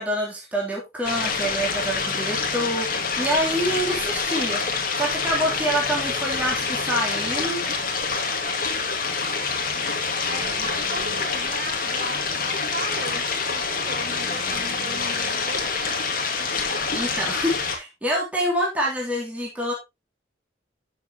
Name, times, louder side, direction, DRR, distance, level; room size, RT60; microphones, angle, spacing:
voice 1, 0.0-2.9 3.2-4.6 4.9-7.6 10.6-10.7 16.9-19.7, equal, 10° right, -4 dB, 3.4 m, -26 dB
sound 1, 1.0-17.8, left 4 dB, 45° left, 2.2 m, -26 dB
voice 2, 10.3-15.7, right 1 dB, 45° right, 2 dB, 4.1 m, -37 dB
13.0 x 6.8 x 3.1 m, 0.22 s
head